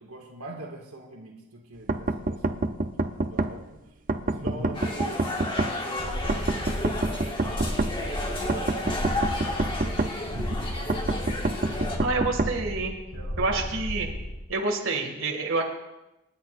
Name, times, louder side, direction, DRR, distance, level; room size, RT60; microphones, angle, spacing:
voice 1, 0.0-2.9 3.3-9.3 9.6-11.4 11.7-12.0 13.1-13.7, right 2 dB, 90° right, -1 dB, 2.1 m, -45 dB
sound 1, 1.9-3.5 4.1-5.7 6.3-7.9 8.5-10.1 10.9-12.5, right 2 dB, 40° right, 0.7 m, -26 dB
sound 2, 4.7-12.0, left 1 dB, 25° left, 1.7 m, -33 dB
sound 3, 6.0-14.4, equal, 70° left, 4.6 m, -34 dB
voice 2, 12.0-12.9 13.4-14.1 14.5-15.6, right 3 dB, 65° right, 0 dB, 2.3 m, -28 dB
27.5 x 10.5 x 2.6 m, 0.98 s
head